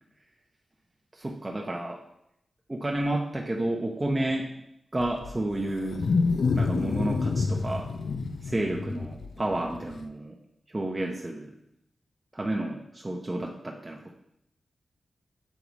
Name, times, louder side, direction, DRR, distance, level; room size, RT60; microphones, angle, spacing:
voice 1, 1.1-2.0 2.7-4.5 4.9-6.1 6.5-7.9 8.4-10.4 10.7-11.5 12.3-14.1, right 1 dB, 20° right, 0 dB, 0.6 m, -31 dB
Wild animals, 5.0-10.0, left 4 dB, 70° left, 0.5 m, -28 dB
7.2 x 4.8 x 4.0 m, 0.78 s
wide cardioid pair, 115°, 0 cm